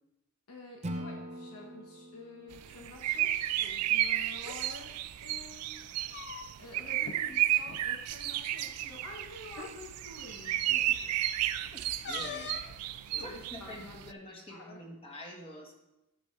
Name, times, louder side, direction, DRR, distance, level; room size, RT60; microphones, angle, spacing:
voice 1, 0.5-3.3 3.6-4.9 5.2-5.9 6.6-11.1 13.1-14.8, left 2 dB, 90° left, -1 dB, 1.3 m, -49 dB
Acoustic guitar / Strum, 0.8-4.0, equal, 30° right, 0.5 m, -43 dB
sound 1, 2.5-14.1, right 13 dB, 85° right, 0.4 m, -33 dB
sound 2, 4.3-4.6 5.8-6.7 7.0-7.2 7.6-7.8 8.8-8.9 9.5-9.8 12.0-12.8, left 6 dB, 50° left, 0.5 m, -42 dB
voice 2, 11.7-12.5 13.2-15.7, left 1 dB, 25° left, -1 dB, 1.5 m, -47 dB
10.0 x 7.0 x 3.3 m, 0.93 s
head